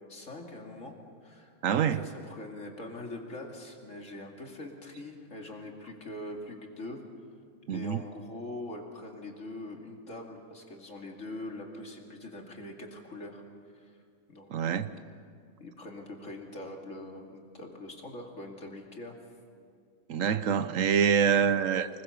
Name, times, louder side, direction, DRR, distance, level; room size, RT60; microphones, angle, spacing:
voice 1, 0.1-1.0 1.2-7.0 7.7-13.4 13.7-14.0 14.3-14.9 15.6-19.1, left 1 dB, 65° left, 1 dB, 2.9 m, -43 dB
voice 2, 1.6-2.1 7.7-8.0 14.5-14.9 20.1-21.9, right 7 dB, 75° right, 12 dB, 1.1 m, -26 dB
25.5 x 20.5 x 7.0 m, 2.2 s
omnidirectional pair, 1.4 m